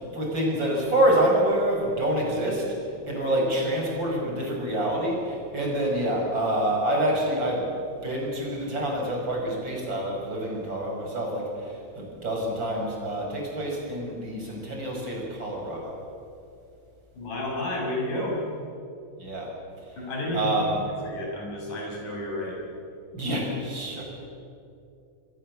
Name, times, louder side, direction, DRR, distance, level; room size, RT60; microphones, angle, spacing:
voice 1, 0.1-2.7 3.0-7.7 8.0-16.0 19.2-19.5 20.3-20.8 23.1-24.2, right 1 dB, 35° right, -1 dB, 6.4 m, -27 dB
voice 2, 17.1-18.4 20.0-20.7 21.0-22.6, left 1 dB, 85° left, -2 dB, 7.8 m, -31 dB
27.5 x 22.0 x 7.4 m, 2.5 s
omnidirectional pair, 3.7 m